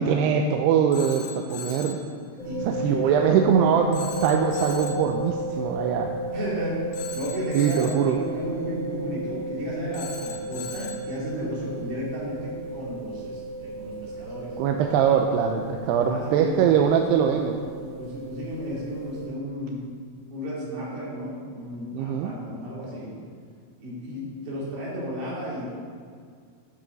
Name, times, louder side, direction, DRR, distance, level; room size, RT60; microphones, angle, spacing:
voice 1, 0.0-2.0 2.6-6.2 7.5-8.2 14.6-17.6 21.9-22.3, right 7 dB, 90° right, 3 dB, 2.7 m, -22 dB
Telephone, 0.9-2.1 3.9-5.1 6.9-8.1 9.9-11.1, left 6 dB, 65° left, 2.0 m, -39 dB
sound 1, 2.4-19.3, right 2 dB, 20° left, 2.6 m, -34 dB
voice 2, 2.4-3.7 6.3-14.5 16.0-16.9 17.2-17.3 17.8-19.8 20.3-23.1 23.8-25.6, equal, 70° right, -6 dB, 4.8 m, -33 dB
12.5 x 9.7 x 4.0 m, 2.1 s
omnidirectional pair, 4.6 m